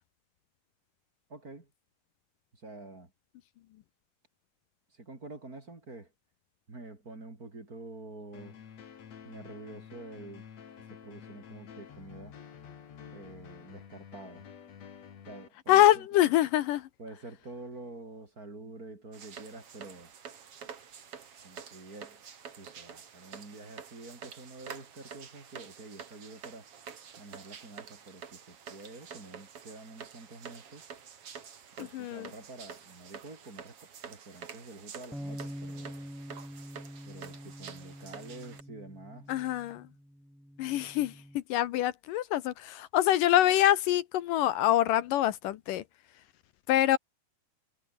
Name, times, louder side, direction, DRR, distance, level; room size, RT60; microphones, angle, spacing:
voice 1, 1.3-1.7 2.5-3.1 4.9-6.1 6.7-8.6 9.2-12.3 13.1-14.5 15.3-16.1 17.0-20.1 21.4-22.2 22.6-26.7 27.2-30.9 31.8-35.9 37.1-39.3, right 2 dB, 25° right, 3.9 m, -47 dB
sound 1, 8.3-15.5, left 8 dB, 50° left, 3.2 m, -50 dB
voice 2, 15.7-16.9 31.8-32.3 39.3-39.9 40.6-45.8 46.7-47.0, left 13 dB, 75° left, 2.5 m, -25 dB
sound 2, 19.1-38.6, right 7 dB, 45° right, 2.9 m, -48 dB
sound 3, 35.1-41.4, equal, ahead, 3.3 m, -45 dB
omnidirectional pair, 4.0 m